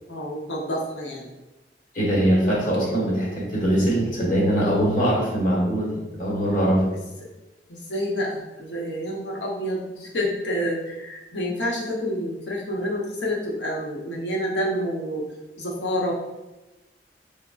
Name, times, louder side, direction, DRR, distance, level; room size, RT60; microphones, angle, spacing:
voice 1, 0.1-1.3 4.5-4.9 7.7-15.3 15.6-16.1, equal, 85° left, -3 dB, 0.9 m, -28 dB
voice 2, 1.9-6.9, equal, 50° left, -5 dB, 1.3 m, -22 dB
6.0 x 2.2 x 2.4 m, 1.0 s
head